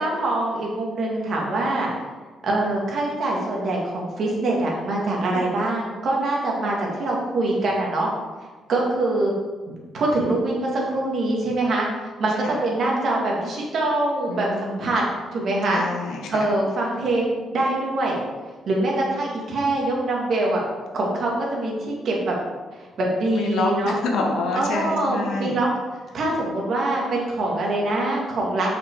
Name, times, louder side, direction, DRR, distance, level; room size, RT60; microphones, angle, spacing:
voice 1, 0.0-1.9 2.4-8.1 8.7-9.3 9.7-15.0 15.3-15.8 16.3-18.2 18.7-20.6 20.9-22.4 22.7-24.0 24.6-25.7 26.1-28.7, right 2 dB, 60° right, -2 dB, 2.3 m, -24 dB
voice 2, 14.3-14.9 15.7-16.4 23.3-25.6, left 2 dB, 80° left, 1 dB, 1.4 m, -27 dB
6.0 x 5.8 x 4.8 m, 1.3 s
cardioid pair, 90°, 0 cm